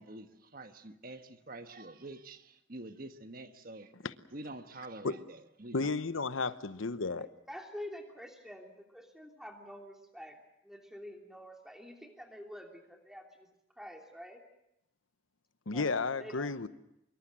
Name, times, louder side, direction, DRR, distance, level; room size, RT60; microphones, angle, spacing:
voice 1, 0.0-3.9 4.3-5.9, right 2 dB, 45° right, 1.3 m, -47 dB
voice 2, 5.7-7.3 15.7-16.7, left 3 dB, 90° left, 1.0 m, -33 dB
voice 3, 7.2-10.4 10.6-13.5 13.8-14.4 15.7-15.9 16.2-16.5, equal, ahead, 3.0 m, -47 dB
25.0 x 23.0 x 7.4 m
head